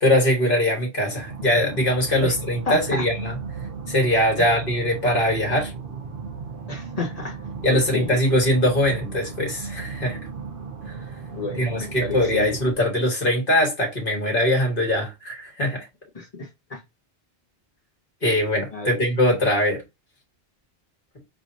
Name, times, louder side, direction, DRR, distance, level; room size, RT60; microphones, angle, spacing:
voice 1, 0.0-3.4 3.9-5.7 7.6-10.2 11.5-15.9 18.2-19.8, left 1 dB, 55° left, 1.9 m, -22 dB
sound 1, 1.1-12.7, right 5 dB, 60° right, 1.0 m, -35 dB
voice 2, 2.7-3.0 4.4-4.5 6.7-7.4 7.7-8.2 11.3-12.5 16.1-16.8 18.7-19.0, left 3 dB, 35° left, 1.5 m, -31 dB
4.8 x 3.5 x 2.7 m
omnidirectional pair, 1.1 m